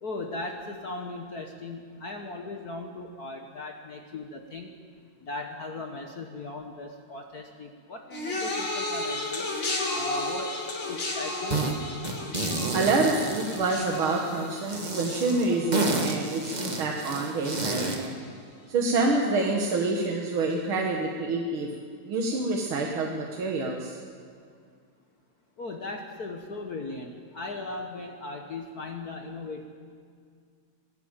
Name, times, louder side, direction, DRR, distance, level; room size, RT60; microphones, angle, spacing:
voice 1, 0.0-4.7 5.2-9.5 9.9-10.6 10.9-11.8 25.6-29.7, left 2 dB, 60° left, 3 dB, 1.0 m, -38 dB
sound 1, 8.1-17.5 17.8-18.3 19.1-19.2, left 2 dB, 40° left, 3.0 m, -34 dB
sound 2, 11.5-11.7 12.0-14.2 14.7-18.1, right 2 dB, 35° right, 0.7 m, -30 dB
voice 2, 12.7-18.1 18.7-21.7 22.1-24.0, right 3 dB, 50° right, 0 dB, 2.0 m, -27 dB
23.0 x 12.5 x 9.0 m, 2.1 s
omnidirectional pair, 3.4 m